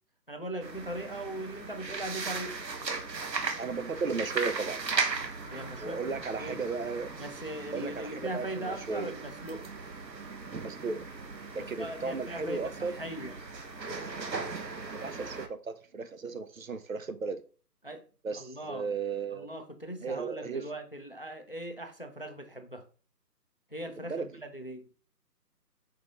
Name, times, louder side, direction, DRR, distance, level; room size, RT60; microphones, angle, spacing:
voice 1, 0.3-2.6 5.5-6.7 7.2-9.7 11.5-13.3 17.8-18.0 18.3-18.9 19.3-22.8 23.7-24.9, right 1 dB, 35° left, 0.5 m, -40 dB
sound 1, 0.6-15.5, right 4 dB, 80° right, 1.4 m, -38 dB
voice 2, 3.6-4.8 5.8-7.1 7.7-9.1 10.6-11.0 11.5-12.9 14.9-17.4 18.2-19.5 20.0-20.7 24.1-24.4, right 4 dB, 55° right, 0.8 m, -35 dB
5.4 x 5.1 x 3.6 m
hypercardioid pair, 170°, 50 cm